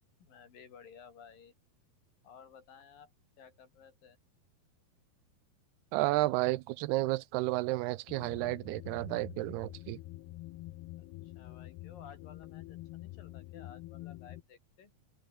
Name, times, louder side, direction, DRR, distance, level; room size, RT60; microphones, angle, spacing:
voice 1, 0.2-1.5 2.2-3.1 3.4-4.2 11.0-14.9, left 7 dB, 60° left, 4.8 m, -55 dB
voice 2, 5.9-10.0, right 18 dB, 85° right, 2.7 m, -32 dB
sound 1, 8.1-14.4, left 17 dB, 85° left, 2.9 m, -47 dB
omnidirectional pair, 4.6 m